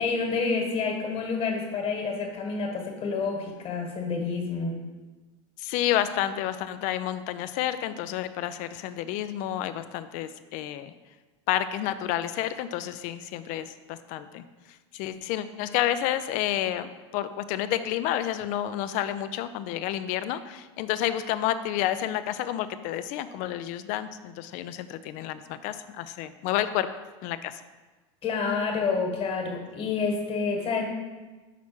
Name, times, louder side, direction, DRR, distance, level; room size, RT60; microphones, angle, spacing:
voice 1, 0.0-4.8 28.2-30.8, left 4 dB, 35° left, 2 dB, 1.6 m, -28 dB
voice 2, 5.6-10.9 11.5-14.4 14.9-26.9 27.2-27.6, left 12 dB, 55° left, 12 dB, 0.5 m, -30 dB
6.0 x 4.3 x 6.0 m, 1.3 s
hypercardioid pair, 105°, 16 cm